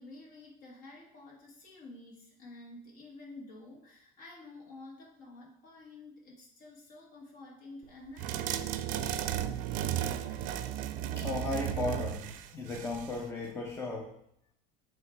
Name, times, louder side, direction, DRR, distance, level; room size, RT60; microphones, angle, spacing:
voice 1, 0.0-8.7, left 2 dB, 50° left, -4 dB, 1.9 m, -50 dB
sound 1, 8.2-13.2, right 11 dB, 50° right, 0.5 m, -34 dB
voice 2, 11.2-14.2, left 3 dB, 15° left, 1 dB, 0.6 m, -36 dB
8.6 x 3.1 x 4.6 m, 0.71 s
cardioid pair, 155°, 17 cm